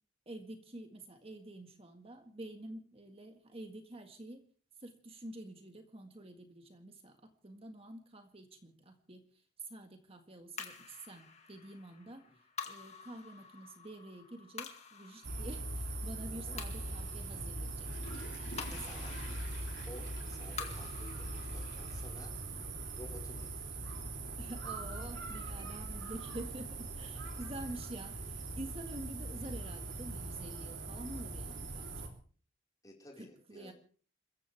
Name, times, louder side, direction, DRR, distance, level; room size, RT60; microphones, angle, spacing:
voice 1, 0.3-4.4 4.8-12.2 12.7-17.9 18.7-19.1 24.4-32.2 33.2-33.7, right 1 dB, 30° right, 5 dB, 1.8 m, -48 dB
sound 1, 10.6-25.1, left 5 dB, 35° left, 2.3 m, -50 dB
sound 2, 15.2-32.1, right 2 dB, 80° right, 3.5 m, -41 dB
Water / Toilet flush, 17.5-22.8 23.3-23.4, left 3 dB, 65° left, 5.2 m, -52 dB
voice 2, 18.5-19.2 19.8-22.5 22.9-23.7 24.2-24.3 32.8-33.7, left 1 dB, 20° left, -1 dB, 4.8 m, -53 dB
28.0 x 15.0 x 3.5 m, 0.42 s
head